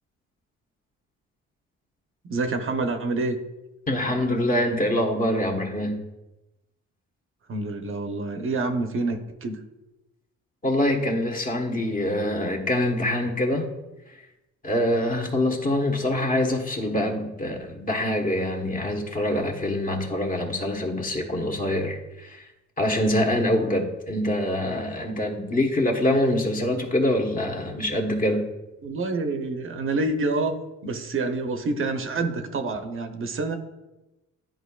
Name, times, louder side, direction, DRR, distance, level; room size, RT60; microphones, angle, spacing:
voice 1, 2.2-3.4 7.5-9.6 28.8-30.6 30.8-33.6, right 3 dB, 45° right, 6 dB, 0.8 m, -27 dB
voice 2, 3.9-6.0 10.6-13.7 14.6-22.4 22.8-28.4, left 1 dB, 30° left, 1 dB, 1.2 m, -25 dB
10.5 x 4.6 x 2.3 m, 1.0 s
cardioid pair, 90°, 30 cm